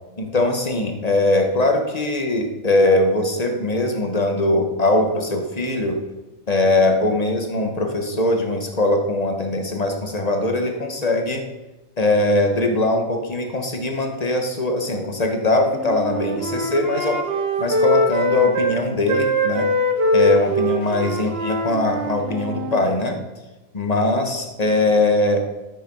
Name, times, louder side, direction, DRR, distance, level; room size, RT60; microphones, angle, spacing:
voice 1, 0.2-6.0 6.5-11.4 12.0-17.2 17.6-19.7 20.1-23.2 23.7-25.4, left 2 dB, 30° left, 4 dB, 1.6 m, -21 dB
Wind instrument woodwind instrument, 15.7-18.8 19.1-22.8, left 1 dB, 45° right, 1.5 m, -22 dB
12.5 x 9.2 x 5.5 m, 1.1 s
omnidirectional pair, 1.4 m